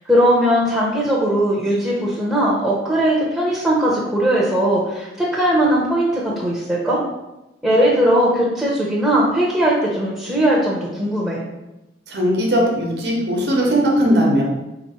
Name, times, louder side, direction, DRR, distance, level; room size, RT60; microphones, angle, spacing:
voice 1, 0.1-7.0 7.6-11.4, right 1 dB, 5° right, -5 dB, 0.7 m, -19 dB
voice 2, 12.1-14.4, equal, 70° right, -1 dB, 1.0 m, -18 dB
4.1 x 3.0 x 4.2 m, 0.98 s
head